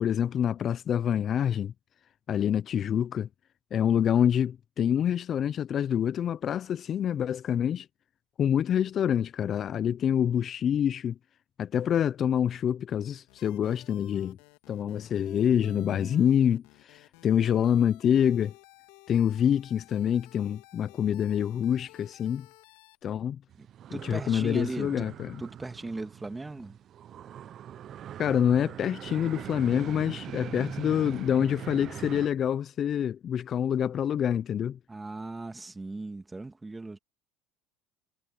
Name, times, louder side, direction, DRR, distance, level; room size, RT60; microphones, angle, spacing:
voice 1, 0.0-1.7 2.3-3.3 3.7-7.9 8.4-11.2 11.6-14.4 14.7-18.5 19.1-22.5 23.0-23.4 24.0-25.4 28.2-34.8, left 9 dB, 45° left, 0.6 m, -26 dB
sound 1, 13.3-23.0, left 24 dB, 75° left, 2.8 m, -55 dB
voice 2, 15.6-16.2 23.6-23.7 23.9-26.8 34.9-37.0, right 3 dB, 15° right, 2.8 m, -38 dB
sound 2, 23.5-32.3, right 10 dB, 45° right, 0.8 m, -42 dB
hypercardioid pair, 85°, 0 cm